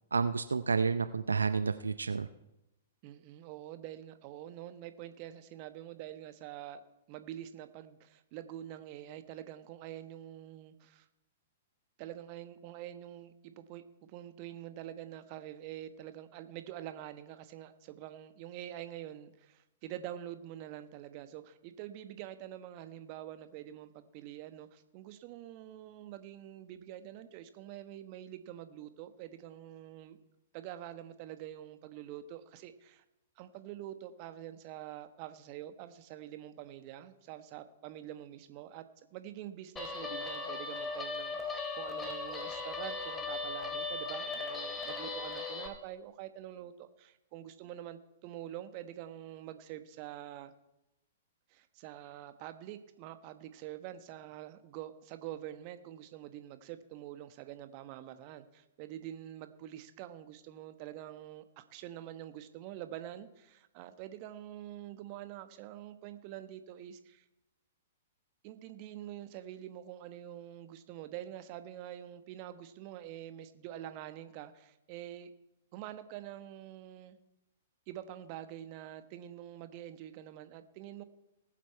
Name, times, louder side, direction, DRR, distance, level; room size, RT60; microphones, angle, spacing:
voice 1, 0.1-2.3, right 5 dB, 80° right, 11 dB, 0.5 m, -30 dB
voice 2, 3.0-6.8 7.1-11.1 12.0-30.2 30.5-33.0 33.4-38.8 39.1-50.5 51.5-67.2 68.4-75.3 75.7-77.2 77.9-81.0, right 12 dB, 40° right, 10 dB, 1.1 m, -46 dB
Guitar, 39.8-45.7, left 3 dB, 15° left, 2.4 m, -38 dB
19.5 x 7.5 x 4.6 m, 0.92 s
figure-of-eight pair, 110°, 0 cm